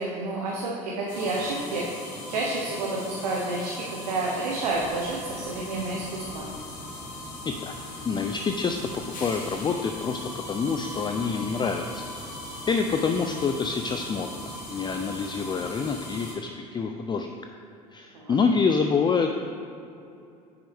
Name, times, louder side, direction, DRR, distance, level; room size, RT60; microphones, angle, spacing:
voice 1, 0.0-1.9 2.3-6.4 18.1-18.3, right 2 dB, 80° right, -3 dB, 1.0 m, -30 dB
sound 1, 1.1-16.3, left 1 dB, 75° left, 1.9 m, -39 dB
Train, 4.7-16.0, left 2 dB, 45° left, 1.6 m, -47 dB
voice 2, 8.1-10.2 10.5-12.1 12.7-14.4 14.7-17.3 17.9-19.3, left 5 dB, 20° left, 5 dB, 0.4 m, -27 dB
8.9 x 6.0 x 3.5 m, 2.6 s
hypercardioid pair, 70°, 20 cm